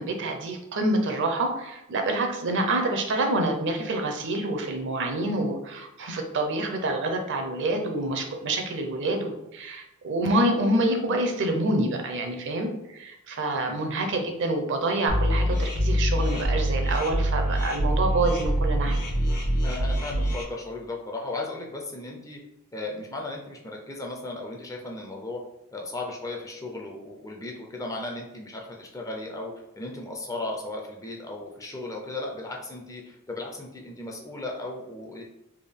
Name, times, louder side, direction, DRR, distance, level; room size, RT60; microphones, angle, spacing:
voice 1, 0.0-19.0, right 2 dB, 55° right, 4 dB, 0.5 m, -27 dB
sound 1, 15.1-20.4, equal, 80° left, 0.8 m, -25 dB
voice 2, 19.6-22.4 22.7-25.4 25.7-35.2, left 2 dB, 15° left, 0 dB, 0.4 m, -36 dB
3.5 x 2.3 x 3.5 m, 0.91 s
head